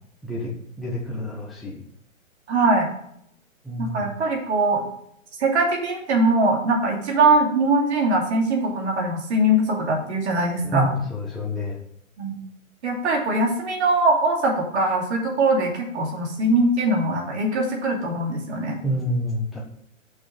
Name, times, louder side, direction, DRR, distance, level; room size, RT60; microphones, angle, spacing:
voice 1, 0.8-1.8 3.6-4.1 10.6-11.8 18.8-19.6, equal, ahead, -5 dB, 0.6 m, -28 dB
voice 2, 2.5-2.9 3.8-4.9 5.4-10.9 12.2-12.3 12.8-18.8, right 2 dB, 55° right, 1 dB, 2.7 m, -21 dB
6.2 x 6.1 x 4.9 m, 0.71 s
hypercardioid pair, 145°, 41 cm